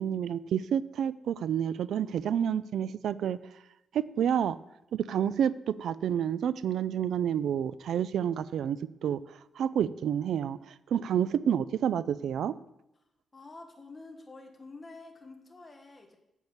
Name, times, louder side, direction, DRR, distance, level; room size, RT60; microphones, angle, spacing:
voice 1, 0.0-3.4 3.9-4.6 4.9-9.2 9.6-12.6, right 9 dB, 85° right, 17 dB, 0.4 m, -29 dB
voice 2, 13.3-16.2, left 3 dB, 25° left, 3 dB, 1.8 m, -48 dB
9.2 x 8.0 x 7.3 m, 0.88 s
wide cardioid pair, 140°, 0 cm